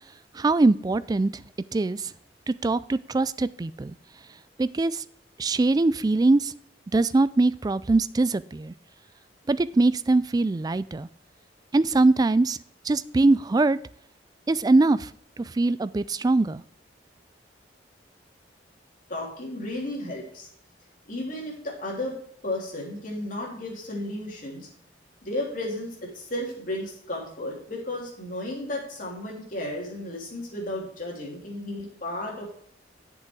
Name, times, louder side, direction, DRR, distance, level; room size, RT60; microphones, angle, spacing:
voice 1, 0.3-1.4 1.7-2.1 2.5-3.9 4.6-5.0 5.4-6.5 6.9-8.7 9.5-11.1 11.7-12.6 12.8-13.8 14.5-15.1 15.4-16.6, right 2 dB, 20° right, 16 dB, 0.3 m, -22 dB
voice 2, 19.1-20.5 21.1-22.2 22.4-24.7 25.2-32.5, left 1 dB, 45° left, -2 dB, 3.3 m, -33 dB
8.2 x 6.9 x 4.7 m, 0.63 s
head